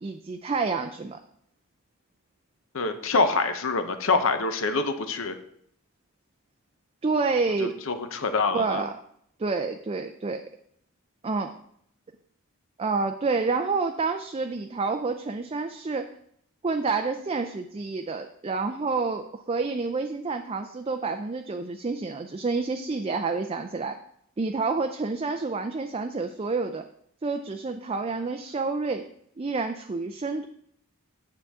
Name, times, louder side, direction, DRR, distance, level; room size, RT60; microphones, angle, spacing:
voice 1, 0.0-1.2 7.0-7.7 8.5-9.0 9.4-10.4 11.2-11.5 12.8-16.1 16.6-24.0 24.4-26.8 27.2-29.0 29.4-30.5, right 4 dB, 25° right, 6 dB, 0.4 m, -28 dB
voice 2, 2.7-5.3 7.6-8.8, left 3 dB, 65° left, 8 dB, 0.8 m, -25 dB
9.4 x 7.0 x 3.6 m, 0.70 s
head